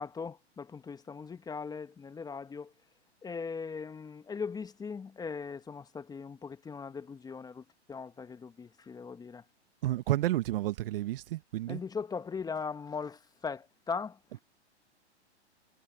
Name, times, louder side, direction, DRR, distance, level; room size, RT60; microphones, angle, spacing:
voice 1, 0.0-2.7 3.2-9.4 11.7-14.2, left 5 dB, 10° left, 1.4 m, -39 dB
voice 2, 9.8-11.8, right 15 dB, 50° right, 1.5 m, -31 dB
hypercardioid pair, 120°, 35 cm